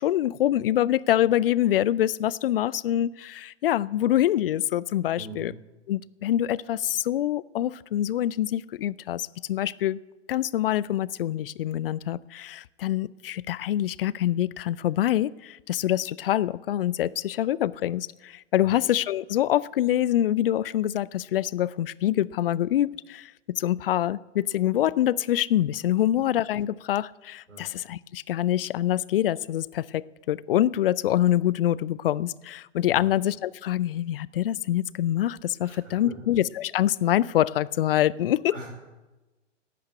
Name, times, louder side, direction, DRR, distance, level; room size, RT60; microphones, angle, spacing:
voice 1, 0.0-5.5 5.9-10.0 10.3-38.6, left 12 dB, 50° left, 22 dB, 0.5 m, -25 dB
voice 2, 5.1-5.5 18.6-18.7 27.5-27.7 32.9-33.1 35.6-36.3 38.5-38.7, right 2 dB, 85° right, 0 dB, 4.7 m, -42 dB
11.0 x 8.7 x 9.2 m, 1.1 s
figure-of-eight pair, 110°, 37 cm